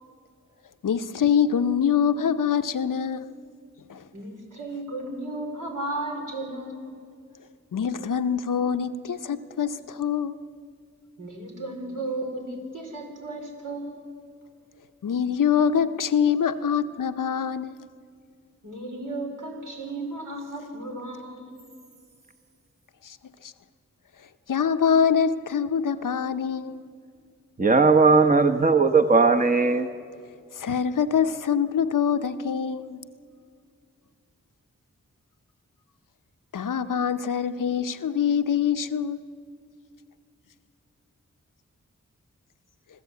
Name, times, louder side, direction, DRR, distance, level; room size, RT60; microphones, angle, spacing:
voice 1, 0.8-3.3 3.9-4.0 7.7-10.4 15.0-17.8 23.0-23.2 23.4-23.5 24.5-26.8 30.5-33.0 36.5-39.3, left 7 dB, 85° left, 0.8 m, -24 dB
voice 2, 4.1-7.0 11.2-14.0 18.6-21.7, right 2 dB, 80° right, 4.7 m, -34 dB
voice 3, 27.6-29.9, right 4 dB, 25° right, 1.0 m, -18 dB
26.0 x 14.5 x 8.4 m
cardioid pair, 50°, 31 cm